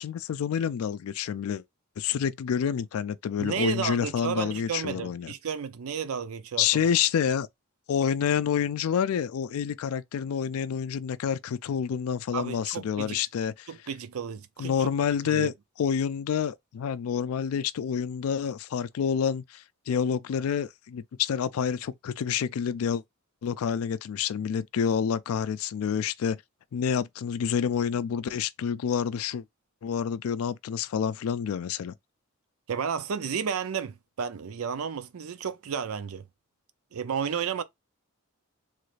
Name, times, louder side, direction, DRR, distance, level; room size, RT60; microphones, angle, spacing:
voice 1, 0.0-1.6 2.0-5.3 6.6-7.5 7.9-13.7 14.6-15.5 15.8-23.0 23.4-26.4 26.7-29.4 29.8-31.9, left 7 dB, 75° left, 0.3 m, -28 dB
voice 2, 3.4-6.7 12.3-13.2 13.7-14.9 15.2-15.5 32.7-36.2 36.9-37.6, right 7 dB, 80° right, 0.5 m, -32 dB
3.1 x 2.4 x 3.1 m
head